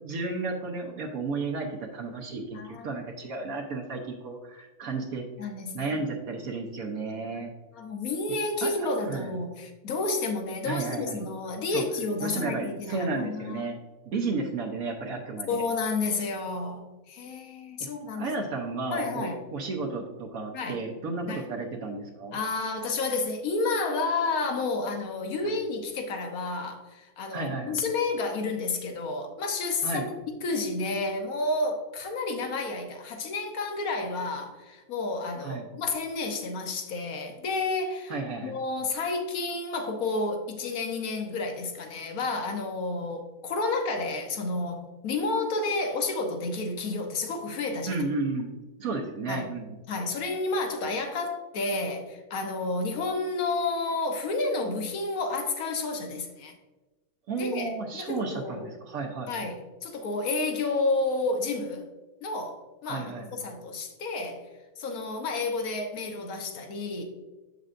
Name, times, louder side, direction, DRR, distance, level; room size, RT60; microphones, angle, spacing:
voice 1, 0.0-5.2 5.7-7.5 8.6-9.4 10.7-11.2 11.7-11.8 12.2-13.8 14.1-15.6 18.1-22.4 25.4-25.5 27.3-27.8 29.8-30.1 35.4-35.7 38.1-38.6 47.9-48.5 48.8-49.8 57.3-59.5 62.8-63.4, right 3 dB, 70° right, 0 dB, 1.2 m, -33 dB
voice 2, 2.5-2.9 4.8-4.9 5.4-6.0 7.1-7.5 7.7-13.8 15.5-18.3 18.9-19.4 20.5-20.8 21.3-21.4 22.3-30.1 30.3-38.1 38.4-48.0 49.3-49.5 49.9-56.5 57.3-58.7 59.3-61.9 62.2-64.5 64.8-67.0, left 3 dB, 70° left, 4 dB, 1.4 m, -31 dB
7.3 x 6.6 x 2.5 m, 1.2 s
omnidirectional pair, 1.6 m